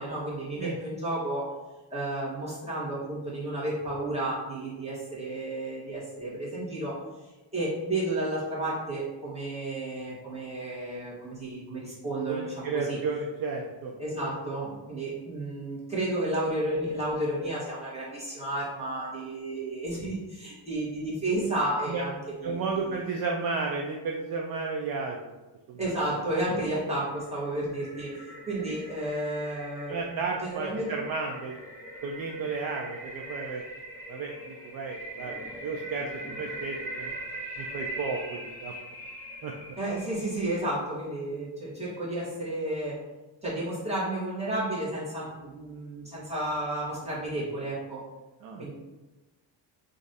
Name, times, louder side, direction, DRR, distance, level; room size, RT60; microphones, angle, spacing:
voice 1, 0.0-1.5 1.9-7.0 7.5-13.0 14.0-23.0 25.8-28.2 28.5-30.9 39.8-43.0 43.4-48.0 48.6-48.7, right 1 dB, 15° right, -8 dB, 1.5 m, -32 dB
voice 2, 12.3-13.9 21.9-22.0 22.4-25.3 25.7-25.8 26.1-26.2 29.8-31.5 32.0-33.6 34.1-37.2 37.6-38.7 39.4-39.5 48.4-48.7, right 4 dB, 55° right, 0 dB, 0.5 m, -33 dB
sound 1, 27.2-40.4, right 1 dB, 5° left, 1.4 m, -41 dB
3.0 x 2.6 x 4.1 m, 1.1 s
cardioid pair, 120°, 45 cm